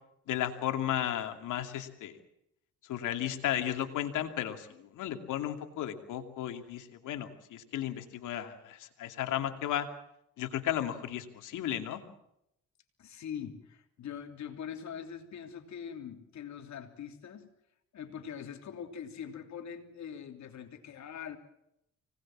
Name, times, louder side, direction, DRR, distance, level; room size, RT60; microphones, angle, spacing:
voice 1, 0.3-2.2 2.8-9.9 10.4-12.0, left 11 dB, 85° left, 7 dB, 2.6 m, -34 dB
voice 2, 13.0-17.5 17.9-21.4, left 8 dB, 65° left, 6 dB, 3.2 m, -43 dB
25.0 x 19.5 x 7.5 m, 0.80 s
cardioid pair, 90°, 30 cm